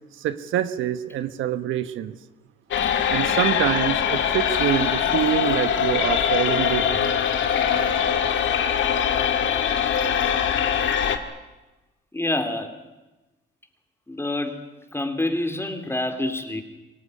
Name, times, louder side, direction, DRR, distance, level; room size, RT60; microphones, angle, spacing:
voice 1, 0.2-2.1 3.1-7.1, right 11 dB, 85° right, 11 dB, 1.2 m, -25 dB
sound 1, 2.7-11.2, left 8 dB, 70° left, 2.2 m, -22 dB
voice 2, 12.1-12.7 14.1-14.6 14.9-16.6, left 1 dB, 10° left, 7 dB, 3.3 m, -27 dB
24.5 x 18.0 x 9.8 m, 1.1 s
cardioid pair, 90°, 20 cm